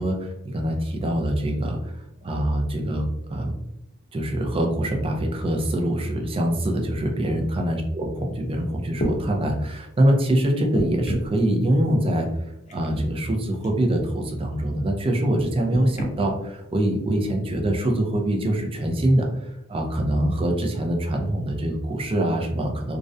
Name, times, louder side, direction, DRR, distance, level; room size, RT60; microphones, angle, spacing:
voice 1, 0.0-1.9 2.2-3.5 4.1-12.3 12.7-23.0, right 1 dB, 25° right, 2 dB, 0.4 m, -24 dB
sound 1, 8.9-9.2 10.7-11.4 12.7-13.0 13.6-13.8 15.7-16.1 17.0-17.1, equal, 35° left, 0.5 m, -29 dB
2.4 x 2.1 x 2.5 m, 0.85 s
head